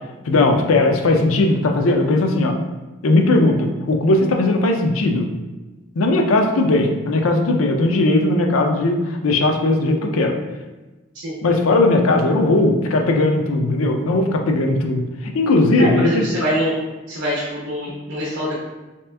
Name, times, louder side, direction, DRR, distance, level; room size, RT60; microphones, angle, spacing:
voice 1, 0.3-2.6 3.0-5.3 6.0-10.3 11.4-16.3, left 2 dB, 85° left, 3 dB, 0.5 m, -18 dB
voice 2, 15.8-16.7 17.1-18.5, equal, 55° right, -4 dB, 0.7 m, -24 dB
3.4 x 2.9 x 3.3 m, 1.2 s
head